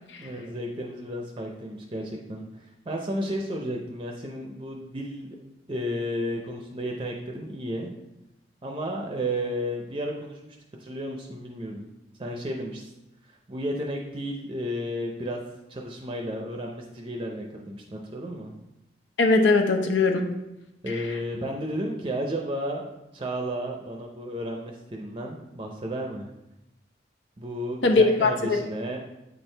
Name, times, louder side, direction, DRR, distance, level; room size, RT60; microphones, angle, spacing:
voice 1, 0.2-5.4 5.7-7.9 8.6-11.9 12.2-12.9 13.5-15.4 15.7-18.5 20.8-22.9 23.1-26.3 27.4-29.0, equal, 25° right, 1 dB, 0.5 m, -33 dB
voice 2, 19.2-20.3 27.8-28.6, left 3 dB, 80° left, 4 dB, 0.8 m, -20 dB
8.0 x 4.5 x 3.3 m, 0.94 s
head